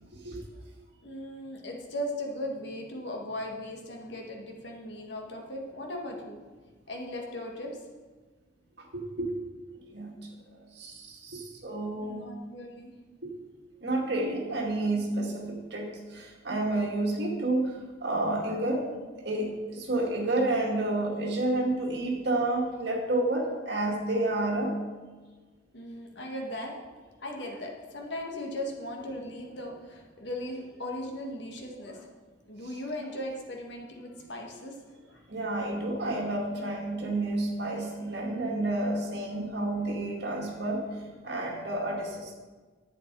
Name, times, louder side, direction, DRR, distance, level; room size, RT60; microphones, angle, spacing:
voice 1, 0.1-0.4 8.8-9.4 9.9-10.3 10.7-12.3 13.2-13.3 13.8-18.9 19.2-24.8 35.3-42.3, right 2 dB, 60° right, -1 dB, 2.2 m, -30 dB
voice 2, 1.0-6.4 6.9-7.7 12.0-12.9 25.7-26.7 27.2-32.1 32.5-34.8 35.1-35.2, left 1 dB, 65° left, 1 dB, 1.9 m, -38 dB
11.0 x 8.7 x 4.8 m, 1.4 s
head